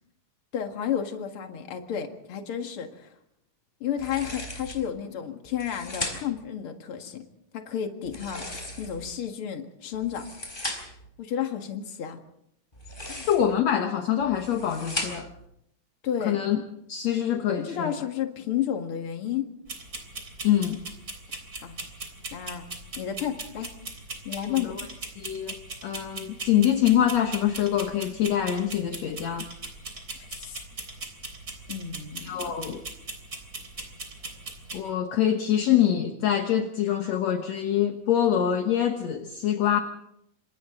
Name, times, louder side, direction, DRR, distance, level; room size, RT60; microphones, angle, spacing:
voice 1, 0.5-3.1 3.8-7.2 7.5-10.3 11.2-12.2 13.1-13.3 16.0-16.4 17.6-19.5 21.6-21.8 22.3-22.6 23.0-23.7 24.2-24.8 30.1-30.6 31.7-32.4, left 9 dB, 45° left, 4 dB, 2.5 m, -32 dB
sound 1, 4.0-4.9 5.5-6.5 8.0-9.1 9.9-11.1 12.7-13.6 14.2-15.4, left 1 dB, 15° left, 4.2 m, -37 dB
voice 2, 13.3-15.3 16.3-16.6 16.9-18.0 20.4-20.8 24.5-24.8 25.2-25.6 25.8-29.5 32.2-32.8 34.7-39.8, left 10 dB, 60° left, 5 dB, 2.3 m, -25 dB
sound 2, 19.7-34.8, right 3 dB, 25° right, 3.7 m, -40 dB
28.0 x 26.5 x 3.9 m, 0.75 s
omnidirectional pair, 3.8 m